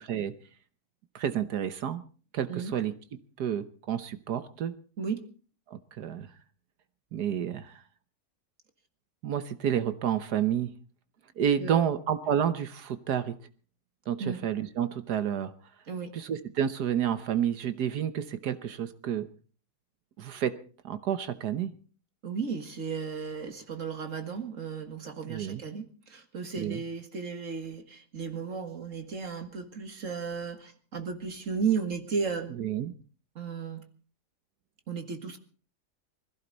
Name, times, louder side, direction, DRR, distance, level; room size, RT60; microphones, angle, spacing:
voice 1, 1.1-2.0 2.3-2.9 3.4-4.7 5.7-6.3 7.1-7.7 9.2-10.7 11.4-13.3 14.1-15.5 16.2-19.3 20.2-20.6 20.8-21.7 25.3-25.6 26.6-26.8 32.6-32.9, right 9 dB, 75° right, 12 dB, 1.5 m, -30 dB
voice 2, 22.2-32.6 33.4-33.8 34.9-35.4, right 5 dB, 50° right, 7 dB, 2.1 m, -34 dB
21.0 x 15.5 x 4.0 m, 0.39 s
omnidirectional pair, 1.8 m